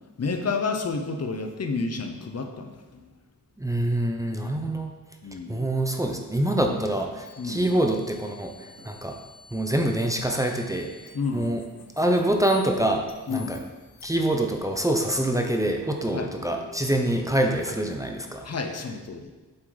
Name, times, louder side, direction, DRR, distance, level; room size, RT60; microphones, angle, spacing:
voice 1, 0.2-3.0 4.3-4.8 5.2-5.7 6.6-6.8 7.4-7.7 11.1-11.5 13.3-13.6 16.1-16.3 18.4-19.3, left 4 dB, 50° left, 5 dB, 0.9 m, -30 dB
voice 2, 3.6-4.9 5.5-9.2 9.5-10.9 11.3-11.6 12.0-13.6 14.0-18.5, right 1 dB, 10° right, 3 dB, 0.8 m, -25 dB
sound 1, 5.0-5.1 5.5-6.0 6.3-9.5 9.8-13.4 14.4-14.8, right 1 dB, 80° right, 2.9 m, -51 dB
sound 2, 7.2-17.9, left 3 dB, 85° left, 0.9 m, -48 dB
7.9 x 7.4 x 4.1 m, 1.2 s
wide cardioid pair, 105°, 33 cm